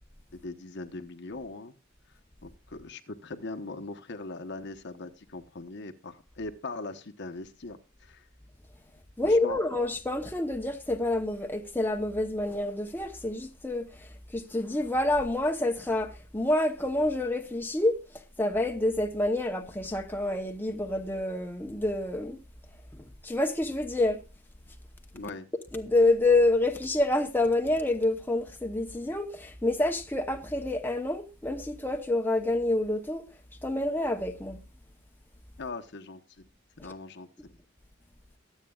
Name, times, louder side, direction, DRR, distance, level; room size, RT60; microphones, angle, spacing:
voice 1, 0.3-1.7 2.4-8.3 9.2-9.6 25.1-25.5 35.6-36.5 36.8-37.6, left 3 dB, 55° left, 1.0 m, -40 dB
voice 2, 9.2-22.4 22.9-24.2 25.7-33.3 33.6-34.6, left 2 dB, 10° left, 0.8 m, -28 dB
22.5 x 8.2 x 2.3 m
head